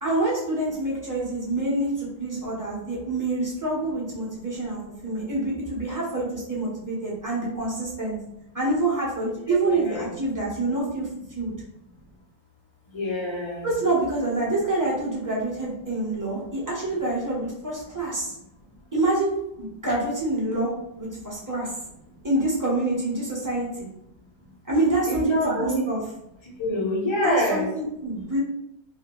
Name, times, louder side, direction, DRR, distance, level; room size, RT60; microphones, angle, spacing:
voice 1, 0.0-8.2 8.5-11.1 11.3-11.5 13.6-18.3 18.9-21.7 22.2-23.9 24.7-26.0 27.2-28.4, right 2 dB, 15° right, -6 dB, 0.7 m, -26 dB
voice 2, 9.5-10.1 12.9-13.7 25.1-25.8 26.4-27.7, left 1 dB, 50° left, -3 dB, 0.3 m, -26 dB
2.7 x 2.5 x 3.0 m, 0.81 s
omnidirectional pair, 1.5 m